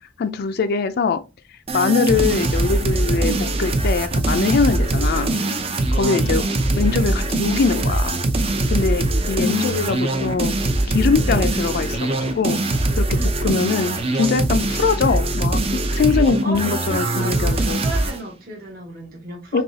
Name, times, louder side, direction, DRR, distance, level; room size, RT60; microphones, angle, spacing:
voice 1, 0.2-1.2 1.7-5.3 5.9-6.4 6.8-8.2 8.7-10.6 10.9-12.6 12.9-15.6 15.9-17.8 19.5-19.6, left 5 dB, 55° left, 0.4 m, -22 dB
sound 1, 1.7-18.2, right 2 dB, 30° right, 0.5 m, -22 dB
sound 2, 3.2-3.5 5.2-5.6 7.0-7.3 9.1-9.3 11.2-11.6 13.7-13.9, right 2 dB, 70° right, 2.4 m, -34 dB
voice 2, 6.0-6.3 9.4-10.4 13.1-13.6 16.4-19.6, left 1 dB, 50° right, 1.4 m, -32 dB
5.4 x 2.4 x 2.7 m
head